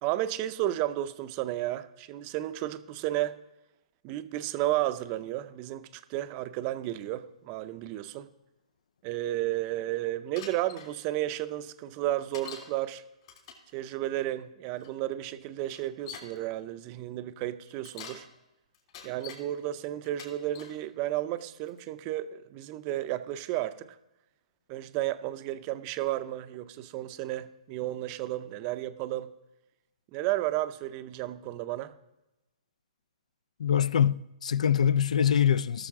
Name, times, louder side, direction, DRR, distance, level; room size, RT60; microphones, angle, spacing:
voice 1, 0.0-3.4 4.0-8.3 9.0-13.0 13.7-18.3 19.0-24.0 24.7-29.3 30.1-31.9, right 14 dB, 30° right, 0.5 m, -32 dB
Bicycle, 10.4-10.9 12.3-12.7 13.2-13.7 14.8-14.9 15.7-16.4 17.7-18.3 18.7-19.4 20.0-20.8 21.4-21.8, left 7 dB, 50° left, 3.0 m, -45 dB
voice 2, 33.6-35.9, left 8 dB, 70° left, 0.3 m, -24 dB
17.5 x 6.6 x 3.6 m
hypercardioid pair, 145°, 4 cm